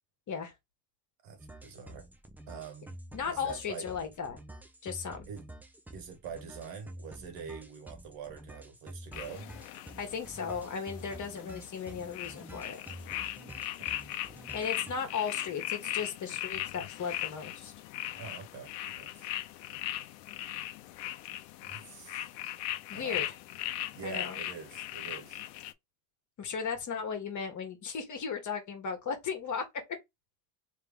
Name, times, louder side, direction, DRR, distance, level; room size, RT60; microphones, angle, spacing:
voice 1, 1.2-2.1 2.5-3.0 3.3-3.9 5.3-5.5 5.9-9.5 13.8-13.9 18.2-19.3 21.6-22.4 22.9-23.3 23.9-25.4, right 6 dB, 55° right, 1.5 m, -45 dB
sound 1, 1.4-14.9, right 1 dB, 5° right, 0.3 m, -49 dB
voice 2, 3.1-4.4 4.8-5.3 10.0-12.8 14.5-17.7 22.9-23.3 24.0-24.4 26.4-29.6, left 6 dB, 35° left, 1.6 m, -36 dB
sound 2, 9.1-25.7, left 14 dB, 80° left, 0.7 m, -39 dB
3.3 x 3.1 x 3.5 m
supercardioid pair, 110°, 50 cm